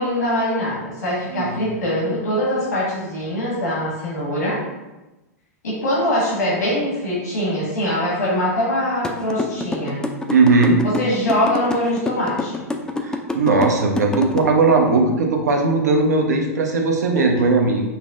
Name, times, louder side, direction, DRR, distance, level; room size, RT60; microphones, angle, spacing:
voice 1, 0.0-4.6 5.6-10.0 10.8-12.6, equal, 85° left, -7 dB, 1.4 m, -23 dB
sound 1, 9.0-14.4, left 3 dB, 10° left, 0.3 m, -25 dB
voice 2, 10.3-10.8 13.1-17.8, right 3 dB, 85° right, 2 dB, 0.6 m, -18 dB
5.6 x 2.0 x 2.4 m, 1.0 s
hypercardioid pair, 105°, 9 cm